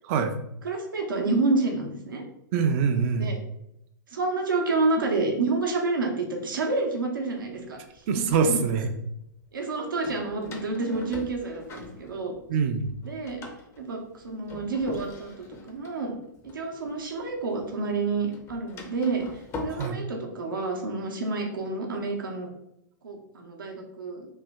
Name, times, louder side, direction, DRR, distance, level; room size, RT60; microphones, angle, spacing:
voice 1, 0.6-2.2 3.1-3.4 4.1-7.8 8.5-8.6 9.5-12.4 13.0-13.4 13.8-16.2 16.4-19.2 19.6-22.5 23.0-24.3, right 3 dB, 80° right, 1 dB, 0.8 m, -29 dB
voice 2, 2.5-3.3 8.1-8.9 12.5-12.9 19.7-20.0, right 5 dB, 40° right, 6 dB, 0.5 m, -24 dB
Door, 6.8-6.9 7.7-8.8 10.0-12.6 12.9-17.4 17.6-19.9, left 3 dB, 25° left, 0.5 m, -42 dB
3.1 x 2.1 x 3.5 m, 0.80 s
hypercardioid pair, 115°, 11 cm